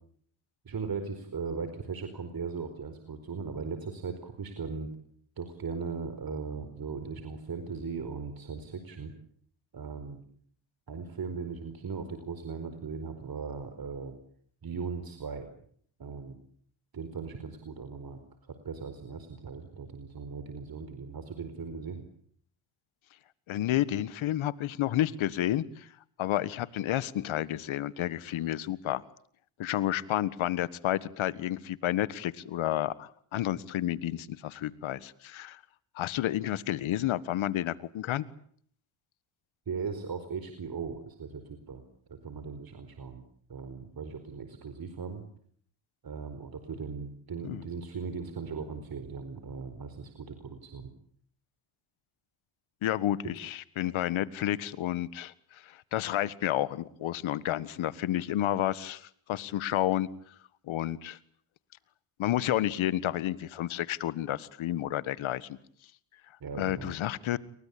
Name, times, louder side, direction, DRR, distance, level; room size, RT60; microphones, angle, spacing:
voice 1, 0.6-4.9 5.4-9.1 9.7-10.2 10.9-14.1 14.6-15.5 16.0-16.4 16.9-18.2 18.5-22.0 39.7-41.8 42.1-43.2 43.5-45.2 46.0-50.9 66.4-66.9, right 5 dB, 45° right, 8 dB, 4.6 m, -38 dB
voice 2, 23.5-25.9 26.2-29.0 29.6-35.6 35.9-38.2 47.4-47.6 52.8-60.1 60.7-61.2 62.2-65.6 66.6-67.4, left 13 dB, 75° left, 17 dB, 1.7 m, -30 dB
29.5 x 23.0 x 8.6 m, 0.62 s
cardioid pair, 80°, 48 cm